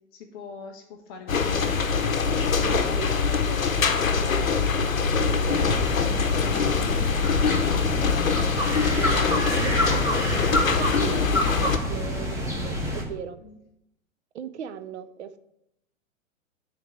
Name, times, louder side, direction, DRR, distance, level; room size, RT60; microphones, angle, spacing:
voice 1, 0.1-1.8 2.4-2.9 6.3-7.0 13.4-13.6, left 6 dB, 20° left, 3 dB, 0.4 m, -42 dB
sound 1, 1.3-11.8, left 5 dB, 85° left, 0.7 m, -23 dB
voice 2, 2.6-4.6 5.1-5.6 8.9-11.3 11.6-13.4 14.3-15.4, right 8 dB, 60° right, 11 dB, 0.6 m, -37 dB
sound 2, 5.5-13.0, equal, 10° right, 1.2 m, -28 dB
7.0 x 3.3 x 6.1 m, 0.80 s
figure-of-eight pair, 105°, 40 cm